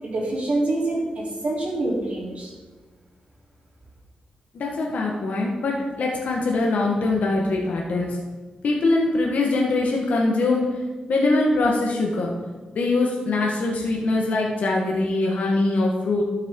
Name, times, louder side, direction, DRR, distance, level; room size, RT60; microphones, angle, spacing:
voice 1, 0.0-2.5, right 2 dB, 55° right, -5 dB, 3.4 m, -26 dB
voice 2, 4.5-8.2 8.6-10.7 11.1-12.3 12.7-16.2, left 2 dB, 80° left, -2 dB, 1.3 m, -22 dB
13.0 x 6.4 x 3.7 m, 1.3 s
cardioid pair, 75°, 3 cm